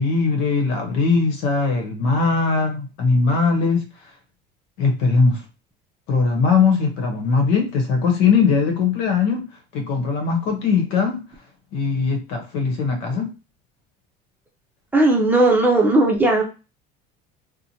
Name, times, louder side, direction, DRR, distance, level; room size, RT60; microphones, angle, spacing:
voice 1, 0.0-3.8 4.8-5.4 6.1-9.4 9.7-11.2 11.7-13.3, left 4 dB, 85° left, 3 dB, 1.0 m, -20 dB
voice 2, 14.9-16.4, right 2 dB, 10° right, 0 dB, 0.6 m, -16 dB
2.9 x 2.1 x 2.7 m, 0.31 s
cardioid pair, 130°, 20 cm